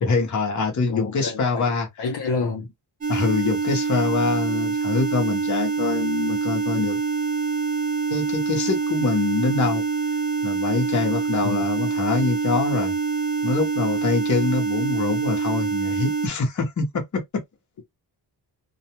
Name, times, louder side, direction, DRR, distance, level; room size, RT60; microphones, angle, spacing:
voice 1, 0.0-1.9 3.1-7.0 8.1-9.8 10.4-12.9 13.4-17.2, left 4 dB, 45° left, 1.0 m, -24 dB
voice 2, 0.9-2.7 11.4-11.7, left 4 dB, 65° left, 0.8 m, -29 dB
sound 1, 3.0-16.3, right 4 dB, 20° right, 0.6 m, -25 dB
2.4 x 2.2 x 2.8 m
wide cardioid pair, 150°, 41 cm